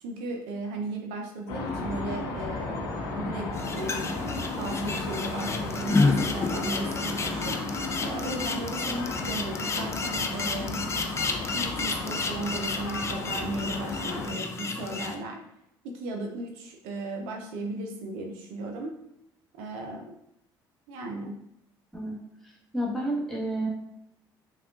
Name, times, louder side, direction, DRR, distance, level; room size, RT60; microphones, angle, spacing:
voice 1, 0.0-2.9 3.1-3.5 3.7-4.1 4.6-10.8 11.5-15.4 15.8-18.9 19.6-20.1 20.9-21.4, right 2 dB, 75° right, 2 dB, 0.5 m, -36 dB
sound 1, 1.5-14.3, left 3 dB, 75° left, 0.6 m, -34 dB
sound 2, 3.5-15.1, left 4 dB, 25° left, 0.4 m, -31 dB
voice 2, 22.7-23.7, right 1 dB, 5° left, -4 dB, 1.1 m, -30 dB
3.4 x 2.2 x 2.4 m, 0.78 s
hypercardioid pair, 60°, 11 cm